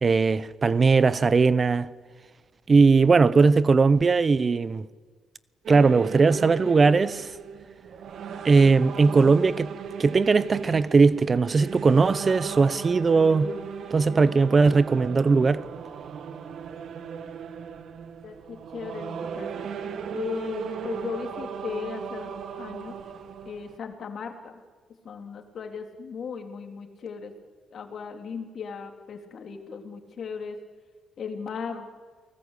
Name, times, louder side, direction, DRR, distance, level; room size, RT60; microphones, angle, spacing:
voice 1, 0.0-1.9 2.7-4.9 5.7-7.3 8.4-9.7 10.0-13.5 13.9-15.6, right 4 dB, 35° right, 0.8 m, -19 dB
sound 1, 5.6-23.8, right 7 dB, 65° right, 1.7 m, -37 dB
voice 2, 18.2-19.7 20.1-22.3 22.6-23.0 23.4-24.6 25.0-27.3 27.7-30.6 31.2-31.9, left 6 dB, 55° left, 3.3 m, -36 dB
29.5 x 19.5 x 8.3 m
cardioid pair, 90°, 0 cm